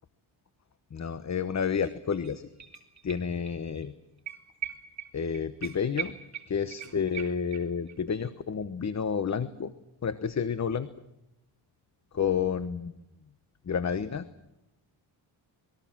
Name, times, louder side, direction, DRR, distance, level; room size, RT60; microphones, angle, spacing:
voice 1, 0.9-2.5 3.0-3.9 5.1-6.1 6.5-9.7 10.0-10.9 12.1-12.9 13.7-14.3, left 6 dB, 35° left, 12 dB, 1.1 m, -30 dB
sound 1, 1.8-1.9 2.2-3.5 3.8-3.9 4.3-7.9 8.2-8.3, right 9 dB, 35° right, 3.1 m, -40 dB
26.5 x 21.0 x 7.5 m, 0.90 s
cardioid pair, 95°, 49 cm